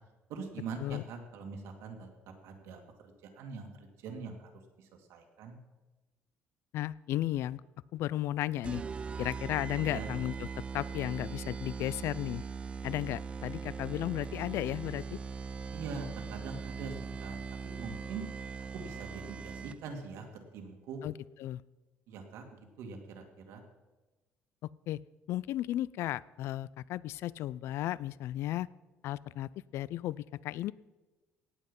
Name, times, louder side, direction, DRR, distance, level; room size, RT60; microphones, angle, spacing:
voice 1, 0.3-2.1 2.4-2.8 3.2-4.5 4.8-5.6 9.8-10.1 15.7-17.4 17.6-18.2 18.7-20.2 20.5-21.0 22.1-23.6, right 5 dB, 85° right, 3 dB, 2.3 m, -43 dB
voice 2, 6.7-7.6 7.9-8.8 9.2-10.5 10.7-12.4 12.8-15.2 21.0-21.1 21.4-21.6 24.9-25.0 25.3-28.7 29.0-30.7, left 14 dB, 70° left, 21 dB, 0.4 m, -34 dB
sound 1, 8.6-20.0, right 5 dB, 25° right, 0.3 m, -40 dB
18.0 x 7.9 x 5.3 m, 1.1 s
cardioid pair, 140°, 5 cm